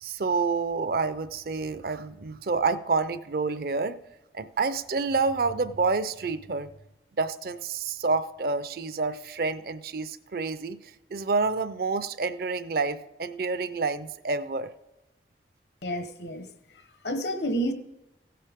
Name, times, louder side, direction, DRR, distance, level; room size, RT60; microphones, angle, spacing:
voice 1, 0.0-4.0 4.3-6.7 7.2-10.8 11.1-14.7, right 4 dB, 55° right, 13 dB, 0.5 m, -28 dB
voice 2, 15.8-16.5 17.0-17.7, equal, 70° left, 9 dB, 1.0 m, -29 dB
16.0 x 8.6 x 3.6 m, 0.97 s
head